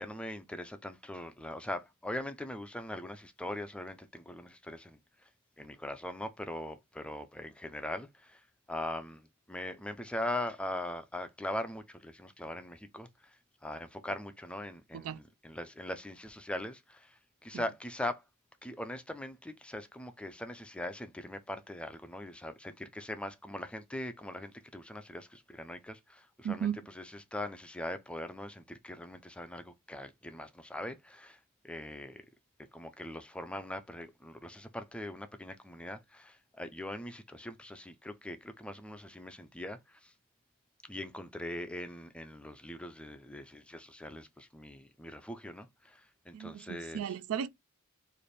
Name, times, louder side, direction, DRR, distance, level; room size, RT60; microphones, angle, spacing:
voice 1, 0.0-5.3 5.6-18.2 18.6-32.2 32.7-40.1 40.8-47.2, left 1 dB, 5° left, 0.4 m, -41 dB
voice 2, 46.3-47.5, right 8 dB, 70° right, 0.4 m, -35 dB
3.2 x 2.5 x 4.0 m
head